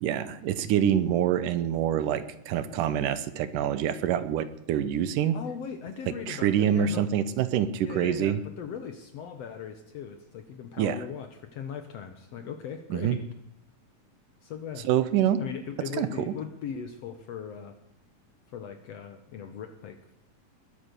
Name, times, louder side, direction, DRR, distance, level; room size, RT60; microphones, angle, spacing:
voice 1, 0.0-5.4 6.3-8.4 10.8-11.0 12.9-13.2 14.8-15.4 16.0-16.3, right 10 dB, 75° right, 13 dB, 2.3 m, -26 dB
voice 2, 5.3-7.1 7.8-13.2 14.4-14.9 15.4-17.8 18.5-20.0, left 7 dB, 65° left, 8 dB, 1.7 m, -39 dB
20.5 x 8.6 x 6.8 m, 0.81 s
omnidirectional pair, 3.9 m